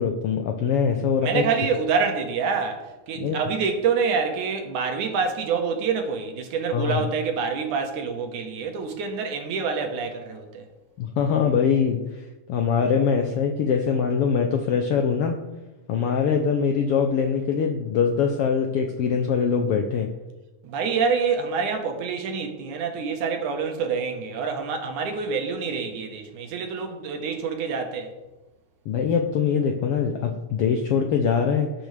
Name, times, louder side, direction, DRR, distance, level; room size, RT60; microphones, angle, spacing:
voice 1, 0.0-1.5 3.2-3.4 6.7-7.0 11.0-15.4 15.9-20.1 28.9-31.7, left 6 dB, 85° left, 1.3 m, -23 dB
voice 2, 1.2-10.7 20.6-28.1, right 5 dB, 75° right, 2.7 m, -26 dB
18.5 x 7.0 x 3.4 m
omnidirectional pair, 3.6 m